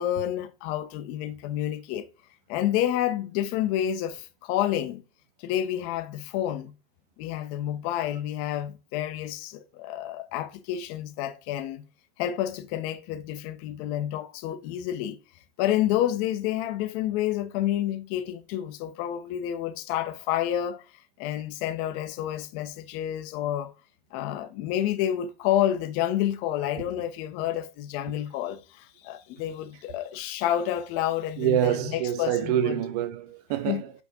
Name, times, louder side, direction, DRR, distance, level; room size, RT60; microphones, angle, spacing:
voice 1, 0.0-2.1 2.5-5.0 5.4-6.7 7.2-11.8 12.2-15.2 15.6-20.8 21.2-23.7 24.1-31.7 32.2-32.8 33.7-33.8, left 12 dB, 25° left, 0.4 m, -29 dB
voice 2, 31.4-33.9, right 10 dB, 40° right, 0.7 m, -26 dB
7.9 x 4.5 x 2.6 m
supercardioid pair, 165°, 31 cm